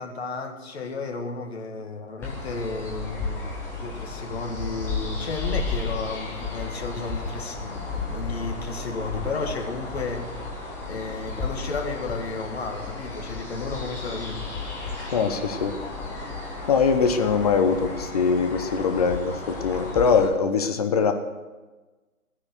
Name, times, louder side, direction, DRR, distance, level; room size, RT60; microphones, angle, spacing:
voice 1, 0.0-3.4 3.8-10.4 10.9-14.5, left 4 dB, 45° left, 4 dB, 2.0 m, -33 dB
sound 1, 2.2-20.3, left 3 dB, 5° left, 1.1 m, -33 dB
voice 2, 15.1-15.7 16.7-21.1, left 5 dB, 25° left, 8 dB, 0.9 m, -22 dB
16.0 x 9.6 x 6.5 m, 1.2 s
figure-of-eight pair, 140°, 44 cm